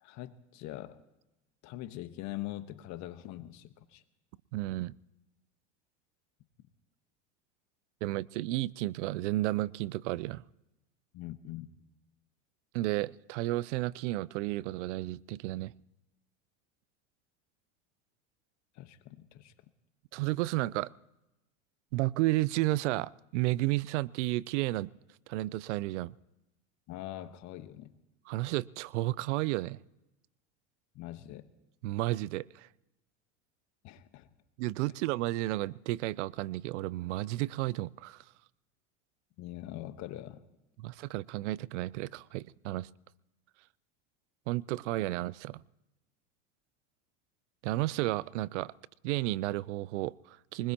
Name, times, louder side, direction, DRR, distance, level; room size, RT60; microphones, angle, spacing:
voice 1, 0.0-1.0 1.6-4.0 11.1-11.7 18.7-19.5 26.9-28.0 30.9-31.5 33.8-34.3 39.4-40.4, left 14 dB, 50° left, 1.3 m, -43 dB
voice 2, 4.5-5.0 8.0-10.4 12.7-15.7 20.1-20.9 21.9-24.9 25.3-26.1 28.3-29.8 31.8-32.7 34.6-38.2 40.8-42.9 44.5-45.6 47.6-48.7 49.0-50.7, right 18 dB, 80° right, 0.5 m, -32 dB
23.5 x 20.5 x 2.9 m
supercardioid pair, 110°, 35 cm